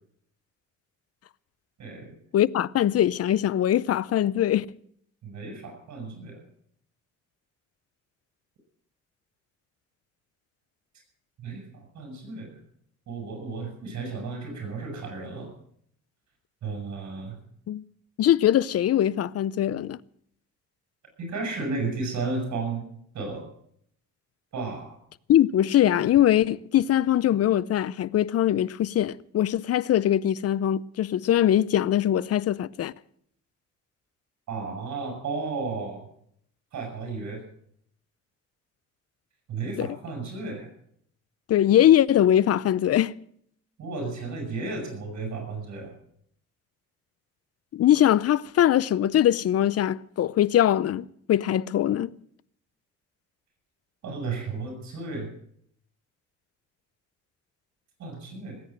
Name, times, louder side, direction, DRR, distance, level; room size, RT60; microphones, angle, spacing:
voice 1, 1.8-2.1 5.2-6.4 11.4-12.6 13.1-15.5 16.6-17.4 21.2-22.9 23.1-23.5 24.5-25.0 34.5-36.1 36.7-37.4 39.5-40.7 43.8-45.9 54.0-55.3 58.0-58.6, right 4 dB, 65° right, 7.6 m, -33 dB
voice 2, 2.3-4.6 17.7-17.8 18.2-20.0 25.3-32.9 39.8-39.9 41.5-43.1 47.7-52.1, left 11 dB, 55° left, 0.6 m, -22 dB
19.0 x 8.9 x 7.7 m
cardioid pair, 90°, 30 cm